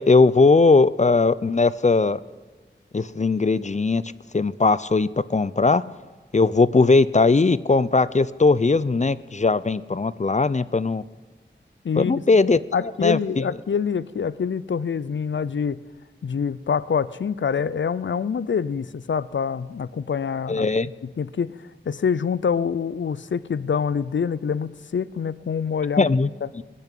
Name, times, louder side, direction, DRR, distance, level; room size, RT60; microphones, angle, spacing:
voice 1, 0.0-2.2 2.9-4.0 4.3-5.8 6.3-11.0 12.0-12.6 13.0-13.4 20.5-20.9 26.0-26.6, left 3 dB, 40° left, 17 dB, 0.5 m, -19 dB
voice 2, 11.8-12.2 12.7-15.8 16.2-20.7 21.2-21.5 21.9-26.1, left 6 dB, 90° left, 18 dB, 0.5 m, -25 dB
19.5 x 7.0 x 8.3 m, 1.4 s
wide cardioid pair, 45°, 19 cm